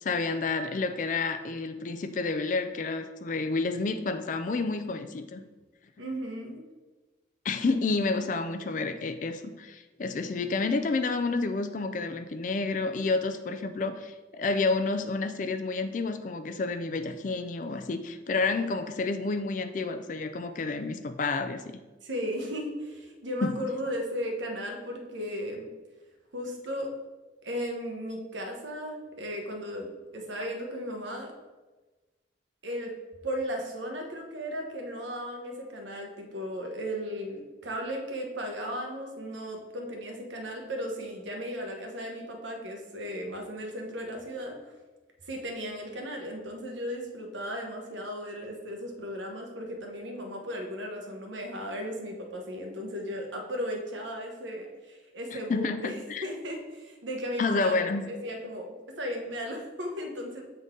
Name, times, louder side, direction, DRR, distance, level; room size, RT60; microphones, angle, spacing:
voice 1, 0.0-5.4 7.4-21.6 23.4-23.6 55.3-56.3 57.4-58.1, left 3 dB, 45° left, 9 dB, 0.3 m, -30 dB
voice 2, 6.0-6.6 22.0-25.7 26.3-26.9 27.4-31.3 32.6-32.9 33.2-44.6 45.2-55.9 56.2-60.4, equal, 85° right, 2 dB, 1.0 m, -36 dB
6.7 x 3.8 x 3.7 m, 1.2 s
head